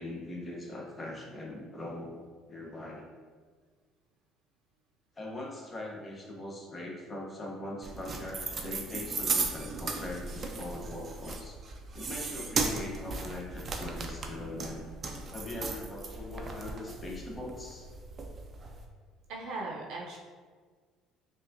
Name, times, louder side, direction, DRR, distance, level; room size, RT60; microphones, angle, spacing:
voice 1, 0.0-3.1 5.2-11.6 11.9-14.9 15.3-17.9, left 1 dB, 25° left, -2 dB, 0.8 m, -41 dB
sound 1, 7.8-18.8, right 4 dB, 35° right, 0.5 m, -36 dB
voice 2, 19.3-20.2, right 2 dB, 70° right, -2 dB, 0.7 m, -38 dB
5.5 x 2.5 x 2.6 m, 1.6 s
cardioid pair, 110°, 0 cm